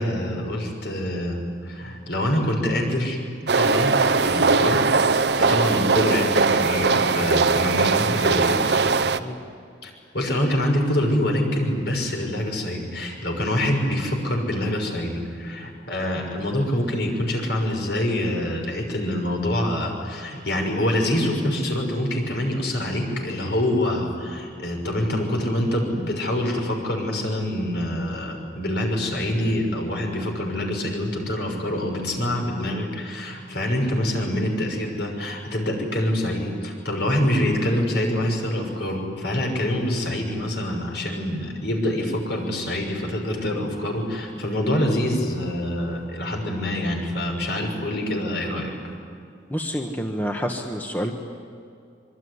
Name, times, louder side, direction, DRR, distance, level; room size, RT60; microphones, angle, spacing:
voice 1, 0.0-3.2 3.5-3.9 4.2-4.8 5.4-8.8 9.8-48.7, left 1 dB, 65° left, 2 dB, 6.2 m, -25 dB
sound 1, 3.5-9.2, right 4 dB, 65° right, 0.9 m, -20 dB
voice 2, 49.5-51.1, equal, 10° left, 3 dB, 1.4 m, -28 dB
25.5 x 24.0 x 9.8 m, 2.4 s
head